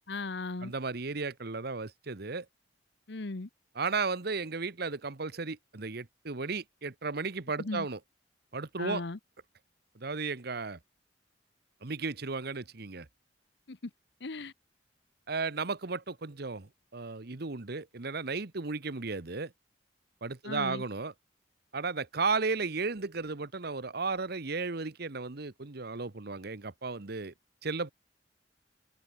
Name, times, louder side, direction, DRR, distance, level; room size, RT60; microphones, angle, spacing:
voice 1, 0.1-0.7 3.1-3.5 7.6-7.9 8.8-9.2 13.7-13.8 14.2-14.5 20.4-20.8, left 3 dB, 70° left, 1.0 m, -37 dB
voice 2, 0.6-2.4 3.8-8.0 8.5-9.0 9.9-10.8 11.8-13.1 15.3-19.5 20.2-21.1 21.7-27.3 27.6-27.9, right 4 dB, 60° right, 1.2 m, -34 dB
open air
head